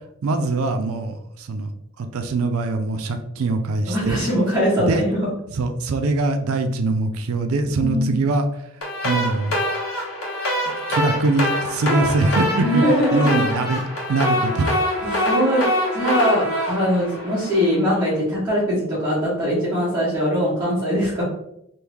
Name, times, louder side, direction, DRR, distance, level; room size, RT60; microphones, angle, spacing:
voice 1, 0.2-1.7 2.0-4.2 4.8-5.0 5.6-8.4 9.0-9.5 10.9-12.9 13.1-13.8 14.1-14.8, right 3 dB, 85° right, 7 dB, 0.4 m, -22 dB
voice 2, 3.9-5.3 7.8-8.1 12.6-13.4 15.0-21.2, equal, 10° right, -13 dB, 1.4 m, -21 dB
sound 1, 8.8-17.9, equal, 85° left, 1.2 m, -24 dB
3.2 x 2.5 x 3.4 m, 0.78 s
head